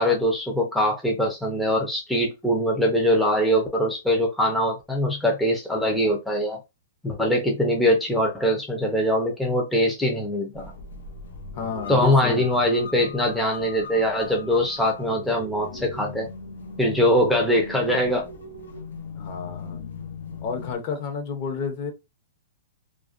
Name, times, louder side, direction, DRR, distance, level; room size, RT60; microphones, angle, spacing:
voice 1, 0.0-6.6 7.0-10.7 11.9-16.3 16.8-18.3, equal, 5° left, 0.5 m, -22 dB
sound 1, 10.5-20.8, left 4 dB, 90° left, 0.7 m, -39 dB
voice 2, 11.5-12.6 19.2-19.8 20.4-21.9, left 5 dB, 40° left, 0.7 m, -31 dB
2.3 x 2.1 x 2.5 m
hypercardioid pair, 145°, 0 cm